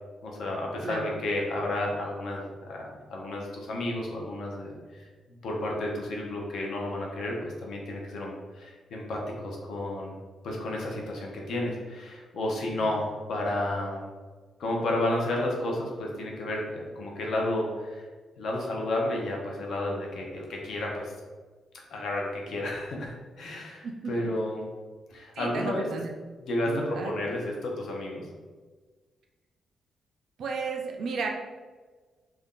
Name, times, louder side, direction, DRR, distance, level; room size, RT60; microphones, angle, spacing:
voice 1, 0.2-5.1 5.4-10.2 10.4-14.0 14.6-18.1 18.4-21.1 21.9-24.6 25.1-25.8 26.4-28.3, left 1 dB, 65° left, -1 dB, 0.6 m, -32 dB
voice 2, 25.4-26.1 26.6-27.1 30.4-31.3, right 4 dB, 60° right, 1 dB, 0.3 m, -33 dB
2.5 x 2.2 x 3.6 m, 1.4 s
wide cardioid pair, 165°, 0 cm